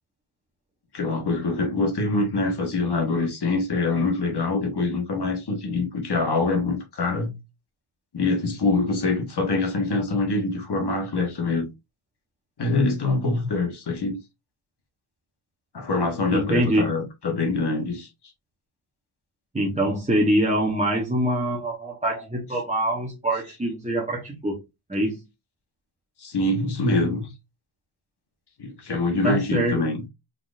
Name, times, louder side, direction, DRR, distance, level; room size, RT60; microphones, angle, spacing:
voice 1, 0.9-7.4 8.1-11.7 12.6-14.2 15.7-18.1 26.2-27.3 28.6-30.0, left 3 dB, 50° left, 1.5 m, -24 dB
voice 2, 16.3-17.0 19.5-24.6 24.9-25.2 29.2-29.8, right 1 dB, 15° right, 1.0 m, -24 dB
4.3 x 3.9 x 2.5 m
wide cardioid pair, 165°, 50 cm